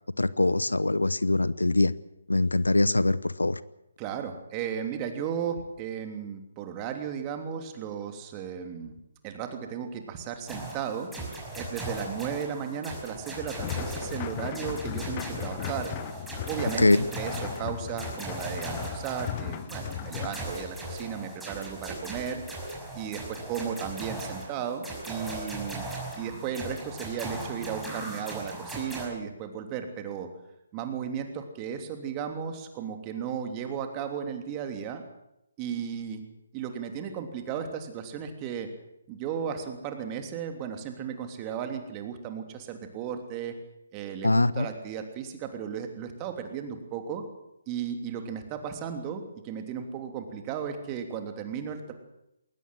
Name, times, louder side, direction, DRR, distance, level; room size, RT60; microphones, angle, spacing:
voice 1, 0.2-1.9 2.3-3.6 16.8-17.1 44.2-44.7, left 2 dB, 80° left, 19 dB, 0.8 m, -23 dB
voice 2, 4.0-8.9 9.2-11.1 11.5-15.9 16.4-22.4 22.9-25.9 26.2-30.3 30.7-35.0 35.6-36.2 36.5-38.7 39.1-43.5 43.9-47.2 47.7-51.9, right 8 dB, 25° right, 6 dB, 3.1 m, -35 dB
sound 1, 10.5-29.1, right 1 dB, 5° right, 5.9 m, -38 dB
sound 2, 13.3-20.4, left 13 dB, 30° left, 0.8 m, -37 dB
21.0 x 19.0 x 7.7 m, 0.85 s
figure-of-eight pair, 140°, 0 cm